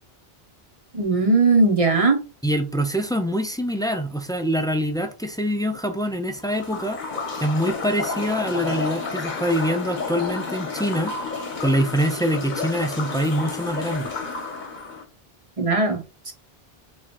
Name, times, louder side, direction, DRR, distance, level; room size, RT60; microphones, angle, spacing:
voice 1, 0.9-2.2 15.6-16.0 16.3-16.4, right 3 dB, 35° right, 1.0 m, -18 dB
voice 2, 2.4-7.0 7.4-11.1 11.6-14.1, equal, 5° left, 0.4 m, -24 dB
sound 1, 6.4-15.0, left 4 dB, 50° left, 1.1 m, -31 dB
3.7 x 3.2 x 4.3 m
omnidirectional pair, 1.0 m